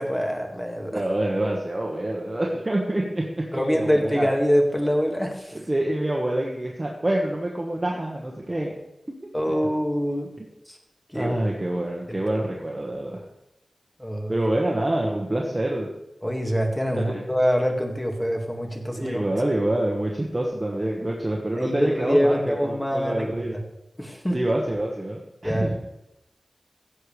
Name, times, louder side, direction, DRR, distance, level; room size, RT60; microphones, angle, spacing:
voice 1, 0.0-1.0 3.5-5.6 9.3-10.3 10.7-10.8 11.1-11.3 12.1-12.2 14.0-14.4 16.2-19.3 21.6-23.3 24.0-24.4 25.4-25.9, equal, 10° left, 2 dB, 2.1 m, -24 dB
voice 2, 0.9-3.2 3.5-4.3 5.5-8.7 11.1-13.2 14.3-15.9 16.9-17.2 18.9-23.6 24.3-25.7, right 1 dB, 25° right, -2 dB, 1.5 m, -26 dB
16.0 x 7.9 x 3.4 m, 0.89 s
wide cardioid pair, 65°, 0 cm